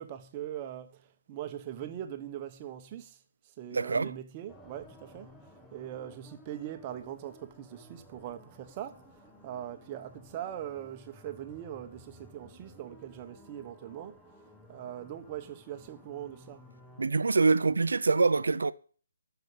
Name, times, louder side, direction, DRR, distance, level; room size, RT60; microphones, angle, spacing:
voice 1, 0.0-3.2 3.6-5.3 5.7-14.2 14.7-16.6, right 11 dB, 20° right, 1.3 m, -41 dB
voice 2, 3.7-4.1 17.0-18.7, right 4 dB, 85° right, 0.7 m, -25 dB
sound 1, 4.5-17.1, equal, 5° left, 1.1 m, -56 dB
12.0 x 7.1 x 8.0 m
hypercardioid pair, 165°, 0 cm